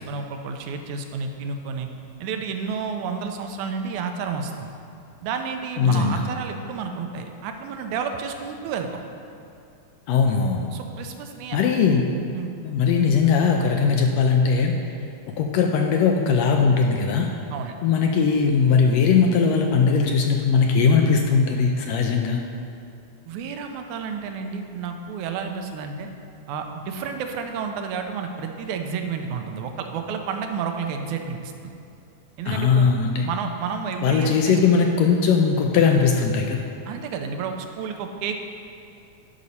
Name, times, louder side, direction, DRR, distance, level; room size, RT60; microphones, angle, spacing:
voice 1, 0.0-1.9 2.2-4.7 5.2-9.0 10.7-11.8 12.4-12.5 17.5-17.8 23.3-26.1 26.5-31.7 32.4-32.9 33.2-34.6 36.9-38.4, right 6 dB, 90° right, 5 dB, 2.1 m, -31 dB
voice 2, 5.8-6.2 10.1-10.7 11.5-12.0 12.6-14.7 15.4-17.3 17.8-22.4 32.4-33.3 34.0-36.6, left 5 dB, 80° left, 2 dB, 1.6 m, -19 dB
11.0 x 4.2 x 5.5 m, 2.5 s
omnidirectional pair, 3.4 m